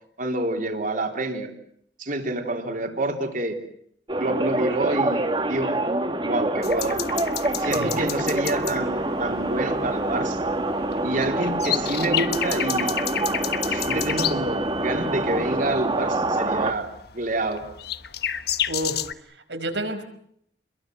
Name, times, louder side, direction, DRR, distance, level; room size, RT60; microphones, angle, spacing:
voice 1, 0.2-1.5 2.0-3.6 4.2-5.2 5.5-5.8 6.2-7.0 7.6-10.4 11.0-13.0 13.7-17.6, right 2 dB, 50° right, 4 dB, 3.8 m, -28 dB
sound 1, 4.1-16.7, right 2 dB, 30° right, 2.0 m, -26 dB
sound 2, 6.6-19.1, left 10 dB, 60° left, 1.3 m, -31 dB
voice 2, 18.7-20.0, right 1 dB, 85° right, 7 dB, 5.2 m, -31 dB
30.0 x 22.5 x 8.0 m, 0.71 s
head